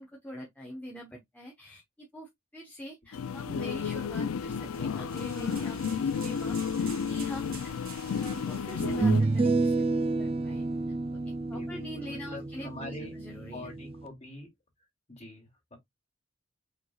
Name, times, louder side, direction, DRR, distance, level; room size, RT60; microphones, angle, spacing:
voice 1, 0.0-5.8 6.1-7.7 8.2-9.9 10.2-10.7 11.5-13.7, equal, 10° left, 1.1 m, -44 dB
sound 1, 3.1-9.2, left 6 dB, 85° left, 0.4 m, -32 dB
sound 2, 4.5-9.9, right 6 dB, 45° right, 1.4 m, -50 dB
sound 3, 7.7-7.8 8.8-14.1, right 3 dB, 30° right, 0.4 m, -29 dB
voice 2, 11.5-13.1 13.5-14.5 15.1-15.8, left 1 dB, 35° left, 2.6 m, -44 dB
5.1 x 3.8 x 2.3 m
head